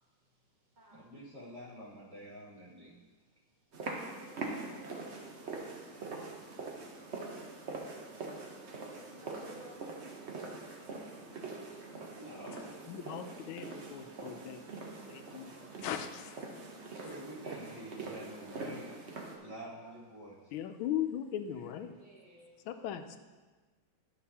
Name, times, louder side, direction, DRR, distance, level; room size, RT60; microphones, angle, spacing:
voice 1, 0.3-1.1 2.7-10.8 16.5-17.6 19.7-20.0 21.5-22.7, right 1 dB, 65° right, -2 dB, 0.4 m, -61 dB
voice 2, 0.9-2.9 12.2-12.8 17.0-18.9 19.4-20.5, equal, 15° right, -9 dB, 2.3 m, -48 dB
sound 1, 3.7-19.4, right 3 dB, 50° right, 0.8 m, -43 dB
voice 3, 12.9-14.6 15.0-16.5 20.5-21.9 22.7-23.2, left 10 dB, 85° left, 8 dB, 1.4 m, -39 dB
11.0 x 6.5 x 2.8 m, 1.3 s
omnidirectional pair, 2.2 m